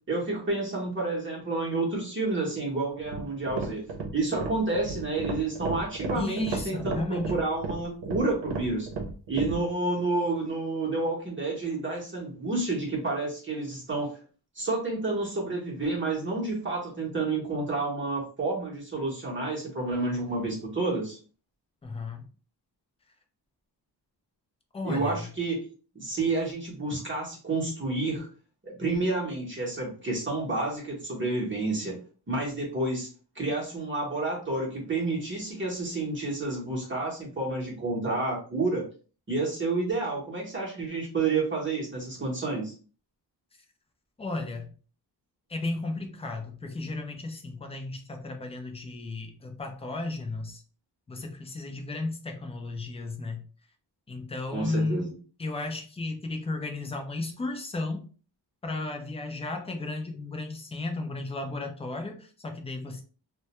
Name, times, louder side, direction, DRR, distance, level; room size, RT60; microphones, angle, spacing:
voice 1, 0.1-3.8 4.1-8.9 9.3-14.2 14.6-21.2 24.8-25.7 25.9-28.3 28.6-32.0 32.3-33.1 33.4-38.8 39.3-42.7 54.5-55.1, right 3 dB, 30° right, 0.8 m, -29 dB
sound 1, 3.0-9.6, right 3 dB, 75° right, 0.7 m, -34 dB
voice 2, 6.1-7.4 21.8-22.2 24.7-25.3 44.2-44.7 45.5-50.6 51.1-53.4 54.1-55.1 55.4-58.1 58.6-63.0, left 2 dB, 15° left, 0.3 m, -34 dB
2.2 x 2.1 x 2.9 m
wide cardioid pair, 125°, 42 cm